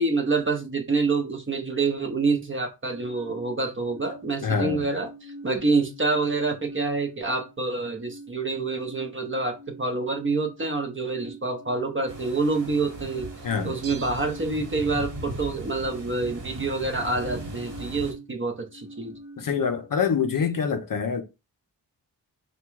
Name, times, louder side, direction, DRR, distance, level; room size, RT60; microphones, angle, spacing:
voice 1, 0.0-13.3 13.6-19.2, right 3 dB, 30° right, 0.7 m, -27 dB
sound 1, 2.9-20.4, right 1 dB, ahead, 0.9 m, -46 dB
voice 2, 4.4-4.8 13.4-13.8 19.4-21.2, left 6 dB, 50° left, 0.6 m, -25 dB
sound 2, 12.1-18.1, right 1 dB, 45° right, 1.3 m, -38 dB
Bell, 13.8-15.2 15.5-15.6, right 6 dB, 80° right, 0.6 m, -46 dB
3.5 x 2.2 x 4.5 m
wide cardioid pair, 165°, 43 cm